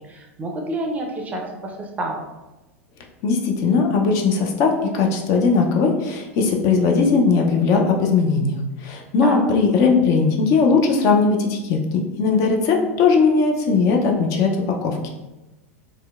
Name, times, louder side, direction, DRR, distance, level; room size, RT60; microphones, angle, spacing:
voice 1, 0.1-2.2 9.2-9.4, right 2 dB, 20° right, 1 dB, 0.4 m, -28 dB
voice 2, 3.2-15.0, left 4 dB, 45° left, 1 dB, 0.4 m, -19 dB
2.7 x 2.0 x 2.3 m, 1.1 s
hypercardioid pair, 95°, 7 cm